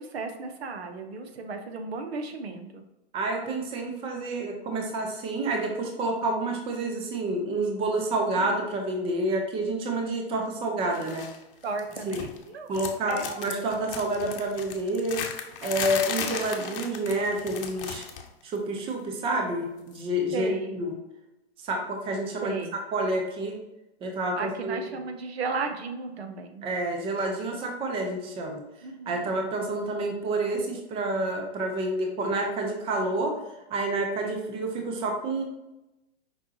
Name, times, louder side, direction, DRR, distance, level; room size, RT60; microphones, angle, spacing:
voice 1, 0.0-2.8 8.4-8.6 11.6-12.7 13.1-13.4 16.2-16.9 20.3-20.7 22.4-22.7 24.4-26.6 28.8-29.3 34.2-34.3, right 4 dB, 70° right, 5 dB, 0.9 m, -35 dB
voice 2, 3.1-11.3 12.1-12.2 12.7-15.2 15.6-18.1 18.4-20.9 21.6-23.6 24.0-24.9 26.6-28.6 29.1-33.4 33.7-35.4, right 2 dB, 15° right, 2 dB, 0.7 m, -29 dB
sound 1, 10.9-11.4 11.6-12.4 12.7-18.3 18.6-18.8 19.9-20.0, left 7 dB, 60° left, 0.8 m, -36 dB
5.2 x 3.6 x 2.8 m, 0.95 s
hypercardioid pair, 130°, 32 cm